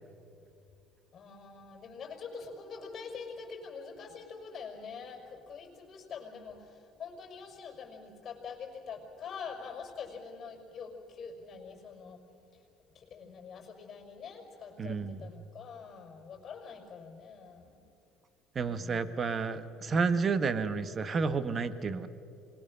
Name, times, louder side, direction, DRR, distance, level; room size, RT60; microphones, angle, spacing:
voice 1, 1.1-12.2 12.5-12.6 12.9-17.8 18.7-19.2, left 5 dB, 40° left, 2 dB, 5.5 m, -45 dB
voice 2, 14.8-15.2 18.5-22.1, right 5 dB, 35° right, 12 dB, 1.2 m, -30 dB
26.0 x 20.5 x 6.6 m, 2.7 s
supercardioid pair, 105°, 0 cm